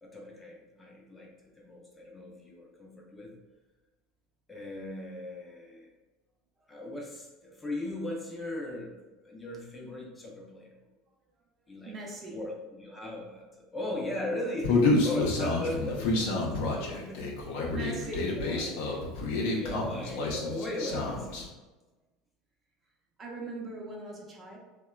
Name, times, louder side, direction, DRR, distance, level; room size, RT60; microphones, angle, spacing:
voice 1, 0.0-3.3 4.5-5.9 6.7-10.7 11.7-11.9 12.2-17.3 17.7-17.9 18.3-18.7 19.6-21.5, left 1 dB, 15° left, -1 dB, 0.5 m, -38 dB
voice 2, 11.8-12.4 17.7-18.4 18.7-18.8 23.2-24.6, right 3 dB, 35° right, -1 dB, 0.6 m, -40 dB
Human voice, 14.6-21.4, left 2 dB, 70° left, 0.5 m, -29 dB
2.8 x 2.1 x 2.3 m, 1.2 s
hypercardioid pair, 80°, 0 cm